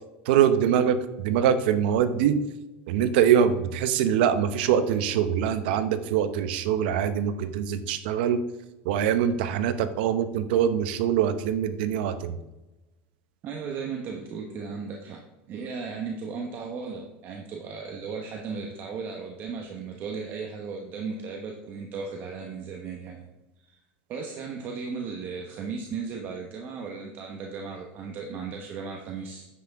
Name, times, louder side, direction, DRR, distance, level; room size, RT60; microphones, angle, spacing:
voice 1, 0.3-2.4 2.9-8.4 8.8-12.4, right 8 dB, 80° right, 11 dB, 0.8 m, -23 dB
voice 2, 13.4-23.3 23.7-23.8 24.1-29.5, right 5 dB, 40° right, 2 dB, 1.0 m, -36 dB
9.8 x 7.8 x 3.6 m, 1.0 s
cardioid pair, 160°, 5 cm